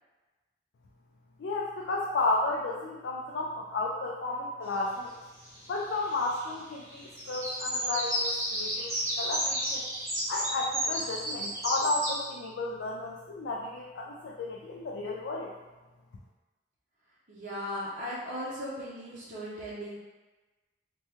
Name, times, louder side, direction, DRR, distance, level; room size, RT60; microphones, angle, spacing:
voice 1, 1.4-5.1 5.7-9.8 10.3-15.5, left 2 dB, 90° left, -2 dB, 0.4 m, -33 dB
sound 1, 5.5-6.5 6.8-12.1, equal, 15° right, 0.8 m, -32 dB
voice 2, 17.3-20.0, equal, 45° right, -8 dB, 0.7 m, -37 dB
3.4 x 2.2 x 3.0 m, 1.2 s
head